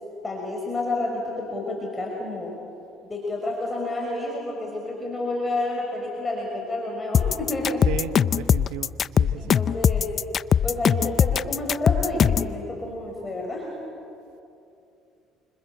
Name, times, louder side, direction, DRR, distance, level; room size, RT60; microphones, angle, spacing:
voice 1, 0.2-2.5 3.1-7.9 9.3-10.2 10.6-13.7, left 2 dB, 20° left, -1 dB, 6.0 m, -30 dB
sound 1, 7.1-12.5, left 8 dB, 45° left, 0.6 m, -20 dB
voice 2, 7.9-9.6, right 13 dB, 80° right, 13 dB, 1.0 m, -35 dB
29.5 x 25.5 x 7.9 m, 2.7 s
supercardioid pair, 75°, 0 cm